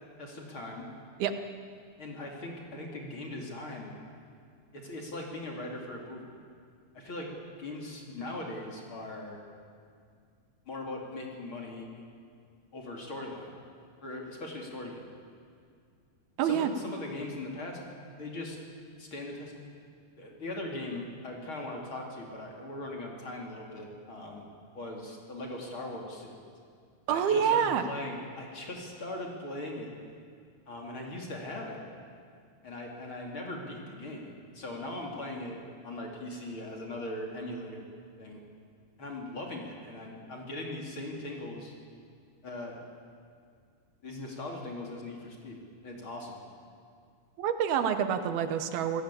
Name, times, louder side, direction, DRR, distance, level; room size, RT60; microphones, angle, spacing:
voice 1, 0.2-0.9 2.0-4.0 4.7-6.3 6.9-7.3 7.6-9.4 10.7-11.9 12.7-13.6 14.0-15.1 16.4-18.6 19.0-19.5 20.2-24.5 24.7-26.4 27.1-29.9 30.7-31.8 32.6-35.6 35.8-37.9 38.2-38.4 39.0-41.7 42.4-42.8 44.0-46.4, left 1 dB, 35° left, 0 dB, 3.2 m, -40 dB
voice 2, 16.4-16.7 27.1-27.8 47.4-49.0, right 8 dB, 80° right, 9 dB, 3.0 m, -27 dB
27.5 x 17.0 x 8.4 m, 2.2 s
omnidirectional pair, 4.4 m